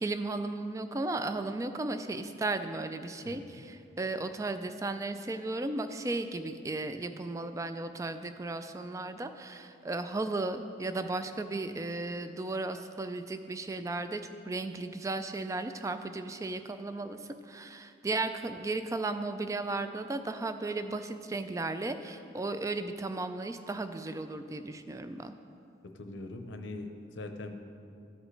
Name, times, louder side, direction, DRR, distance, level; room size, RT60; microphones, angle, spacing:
voice 1, 0.0-17.2 17.5-25.3, right 2 dB, 15° right, 9 dB, 0.3 m, -35 dB
voice 2, 3.2-3.6 26.0-27.5, left 2 dB, 90° left, 6 dB, 0.7 m, -42 dB
14.0 x 5.1 x 3.2 m, 2.5 s
head